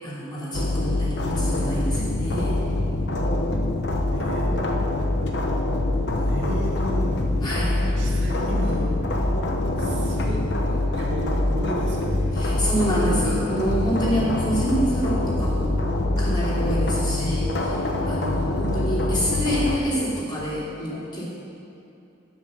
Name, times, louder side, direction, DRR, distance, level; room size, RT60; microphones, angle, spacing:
voice 1, 0.0-2.6 7.4-7.8 12.3-15.8 16.2-17.8 18.1-21.2, equal, 20° left, -7 dB, 3.0 m, -27 dB
sound 1, 0.5-19.8, left 1 dB, 60° left, 1.0 m, -24 dB
voice 2, 4.1-4.9 6.1-7.2 7.9-8.9 9.8-12.3, equal, 65° right, -3 dB, 1.9 m, -34 dB
10.0 x 8.0 x 6.5 m, 2.6 s
head